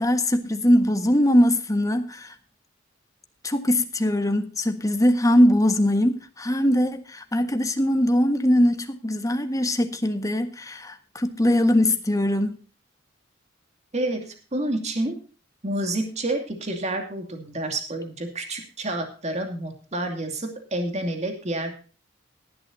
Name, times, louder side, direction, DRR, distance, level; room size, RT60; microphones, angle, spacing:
voice 1, 0.0-2.3 3.4-12.6, equal, 20° left, 1.5 m, -21 dB
voice 2, 13.9-15.2 15.6-21.7, right 1 dB, 35° right, 2.6 m, -29 dB
18.0 x 12.0 x 2.7 m
head